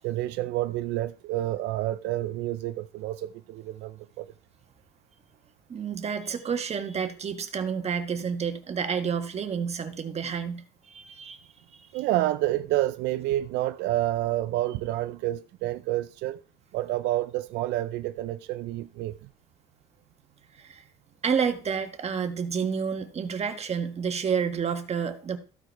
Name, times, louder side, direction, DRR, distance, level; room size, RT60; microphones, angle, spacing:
voice 1, 0.0-4.3 11.9-16.4 16.7-19.3, right 15 dB, 85° right, 0.5 m, -29 dB
voice 2, 5.7-11.4 11.7-11.9 20.6-20.8 21.2-25.4, right 6 dB, 40° right, 1.4 m, -30 dB
14.0 x 4.9 x 4.5 m
cardioid pair, 110°, 17 cm